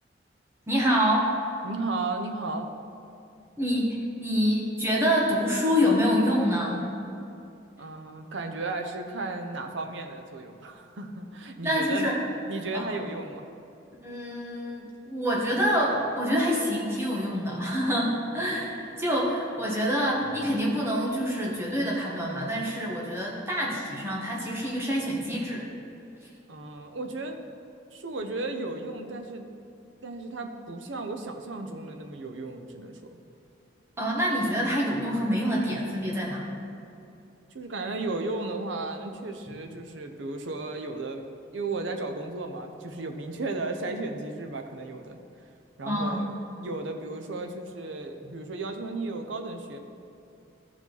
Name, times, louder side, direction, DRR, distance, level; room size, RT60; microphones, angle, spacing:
voice 1, 0.7-1.3 3.6-3.9 4.2-6.8 11.6-12.2 12.7-13.0 14.0-25.6 34.0-36.4 45.9-46.2, equal, 15° right, -4 dB, 1.3 m, -26 dB
voice 2, 1.6-2.7 7.8-12.1 12.5-13.5 26.5-27.4 27.9-29.5 30.0-33.0 37.5-41.2 41.5-45.2 45.8-49.8, right 3 dB, 75° right, 5 dB, 0.7 m, -34 dB
13.5 x 4.9 x 4.0 m, 2.7 s
head